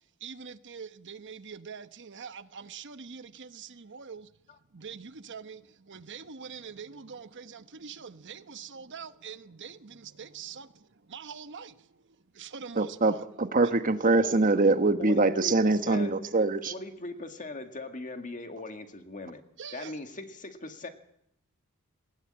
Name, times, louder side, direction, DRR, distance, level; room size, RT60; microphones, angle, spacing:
voice 1, 0.2-4.3 4.7-11.8 12.3-13.2 13.6-13.7 19.6-19.9, right 6 dB, 55° right, 1.0 m, -44 dB
voice 2, 12.7-16.7, right 3 dB, 40° right, 1.2 m, -24 dB
voice 3, 14.1-14.7 15.0-16.1 16.7-19.4 19.7-20.9, left 2 dB, 35° left, 1.9 m, -40 dB
19.0 x 16.5 x 8.7 m
head